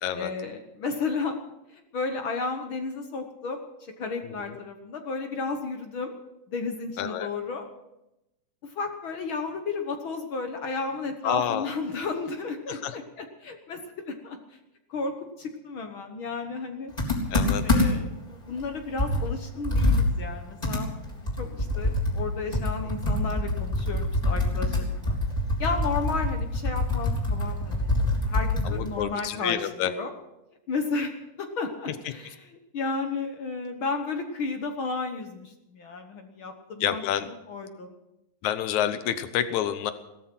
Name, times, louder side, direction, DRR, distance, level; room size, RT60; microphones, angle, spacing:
voice 1, 0.1-1.4 1.7-3.6 4.0-6.2 6.5-7.7 8.6-14.6 14.9-16.9 17.4-20.9 21.2-25.2 25.6-28.0 28.3-30.1 30.7-37.9, left 4 dB, 55° left, 5 dB, 1.6 m, -33 dB
voice 2, 7.0-7.3 11.2-11.7 12.7-12.9 17.3-17.6 28.7-29.9 36.8-37.3 38.4-39.9, left 10 dB, 75° left, 11 dB, 2.3 m, -28 dB
Computer keyboard, 17.0-18.1 18.6-18.7 19.0-22.3 22.5-29.0, left 2 dB, 10° left, 3.6 m, -25 dB
17.5 x 13.5 x 6.1 m, 0.92 s
omnidirectional pair, 3.4 m